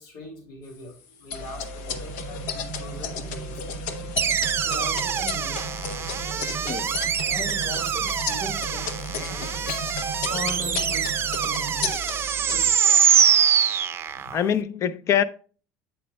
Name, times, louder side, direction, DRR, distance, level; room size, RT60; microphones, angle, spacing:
voice 1, 0.0-3.6 4.6-5.6 6.2-8.9 9.2-9.8 10.2-11.1 11.4-13.1, left 1 dB, 65° left, 2.5 m, -40 dB
sound 1, 1.3-12.7, left 4 dB, 85° left, 0.9 m, -33 dB
sound 2, 1.9-11.9, right 8 dB, 80° right, 0.5 m, -40 dB
sound 3, 4.2-14.5, right 8 dB, 35° right, 0.5 m, -24 dB
voice 2, 14.3-15.2, left 9 dB, 45° left, 0.6 m, -24 dB
8.2 x 7.6 x 2.2 m
supercardioid pair, 110°, 7 cm